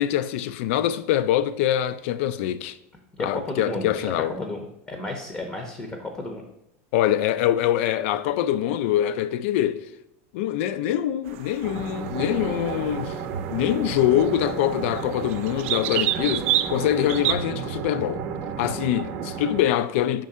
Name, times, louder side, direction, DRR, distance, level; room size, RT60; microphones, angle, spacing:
voice 1, 0.0-2.8 3.2-4.3 6.9-9.9 10.3-13.2 13.5-18.2 18.6-20.2, left 12 dB, 65° left, 0.4 m, -24 dB
voice 2, 3.1-6.4, left 2 dB, 10° left, 0.6 m, -33 dB
sound 1, 11.3-17.3, right 13 dB, 65° right, 0.4 m, -30 dB
sound 2, 11.6-19.6, right 6 dB, 40° right, 0.7 m, -32 dB
5.2 x 3.7 x 5.5 m
supercardioid pair, 160°, 7 cm